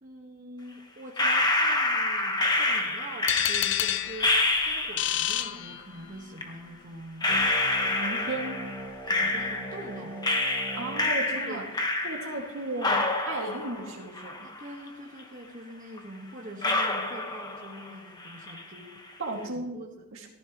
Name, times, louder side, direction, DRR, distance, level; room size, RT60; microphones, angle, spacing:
voice 1, 0.0-7.3 7.8-8.0 9.1-10.3 11.3-11.7 14.4-19.0 19.5-19.9, right 1 dB, 40° right, -1 dB, 1.5 m, -44 dB
sound 1, 1.2-5.3 6.4-6.5 7.2-9.9 10.2-12.5 12.8-14.9 15.2-15.3 16.0-16.1 16.6-17.9 18.2-18.8, left 2 dB, 20° left, 1.3 m, -27 dB
sound 2, 3.3-6.3, left 12 dB, 55° left, 0.6 m, -29 dB
sound 3, 7.3-12.3, right 1 dB, 5° right, 3.5 m, -41 dB
voice 2, 7.9-8.6 10.7-11.6 12.0-14.4 19.2-19.8 20.1-20.3, right 2 dB, 65° right, 1 dB, 2.2 m, -34 dB
15.5 x 14.0 x 3.1 m, 0.97 s
head